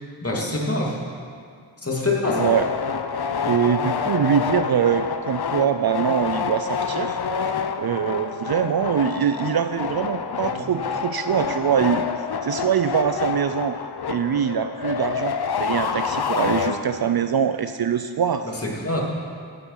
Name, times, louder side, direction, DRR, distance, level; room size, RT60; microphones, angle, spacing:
voice 1, 0.2-1.0 1.8-2.5 10.5-10.7 18.4-19.0, left 2 dB, 30° left, -3 dB, 2.7 m, -25 dB
sound 1, 2.2-17.2, left 6 dB, 55° left, 0.7 m, -27 dB
voice 2, 3.5-7.2 7.8-12.0 12.4-13.8 14.1-15.3 15.6-18.5, right 8 dB, 50° right, 10 dB, 0.5 m, -23 dB
16.0 x 7.0 x 5.8 m, 2.2 s
cardioid pair, 65°, 48 cm